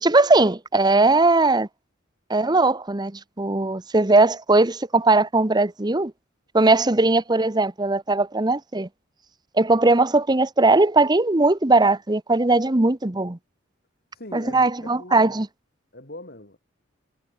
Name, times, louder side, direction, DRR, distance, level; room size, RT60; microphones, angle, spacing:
voice 1, 0.0-1.7 2.3-6.1 6.5-8.9 9.5-13.4 14.3-15.5, right 2 dB, 20° right, 0.9 m, -19 dB
voice 2, 14.1-15.4 15.9-16.6, left 1 dB, 50° left, 5.6 m, -41 dB
head